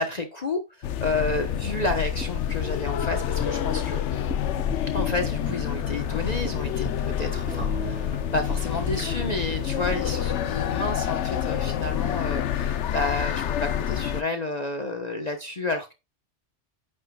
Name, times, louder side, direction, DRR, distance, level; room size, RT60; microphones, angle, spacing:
voice 1, 0.0-4.3 4.9-15.9, left 2 dB, 40° left, 1.2 m, -31 dB
sound 1, 0.8-14.2, left 9 dB, 85° left, 1.0 m, -28 dB
sound 2, 1.3-9.7, right 1 dB, 5° right, 2.8 m, -40 dB
10.5 x 9.2 x 2.4 m
omnidirectional pair, 1.2 m